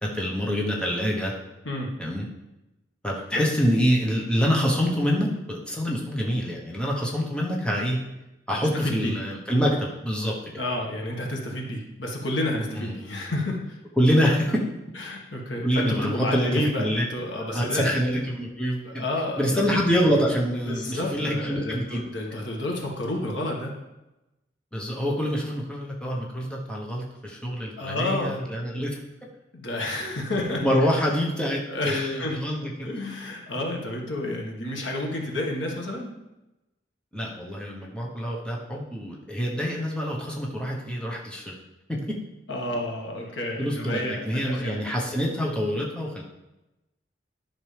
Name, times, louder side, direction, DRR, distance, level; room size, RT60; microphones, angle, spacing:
voice 1, 0.0-1.3 2.0-2.2 3.0-8.0 8.5-10.3 12.8-12.9 14.0-14.6 15.6-17.0 17.5-19.1 19.4-22.0 24.7-29.0 30.4-32.9 37.1-41.6 41.9-42.2 43.6-46.2, equal, 5° left, -3 dB, 1.1 m, -26 dB
voice 2, 8.5-9.2 10.6-13.8 15.0-18.0 18.8-19.6 20.6-23.8 27.8-28.6 29.5-30.6 31.0-31.1 31.7-32.4 32.8-36.1 42.5-44.7, left 1 dB, 90° left, -1 dB, 1.7 m, -30 dB
11.0 x 6.0 x 3.4 m, 0.97 s
head